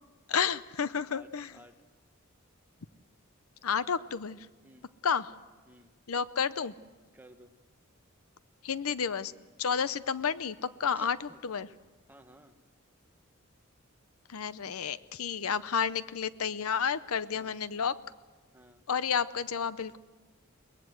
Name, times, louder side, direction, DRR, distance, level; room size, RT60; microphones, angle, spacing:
voice 1, 0.3-1.5 3.6-4.5 5.0-5.3 6.1-6.7 8.6-9.3 9.6-11.2 11.4-11.7 14.3-17.9 18.9-20.0, left 6 dB, 85° left, 15 dB, 0.7 m, -31 dB
voice 2, 1.1-1.7 4.6-4.9 5.7-5.9 7.1-7.5 9.7-9.9 10.9-11.4 12.1-12.6 17.3-17.6 18.5-18.9, right 1 dB, 10° right, 5 dB, 1.2 m, -55 dB
22.5 x 20.0 x 7.8 m, 1.3 s
head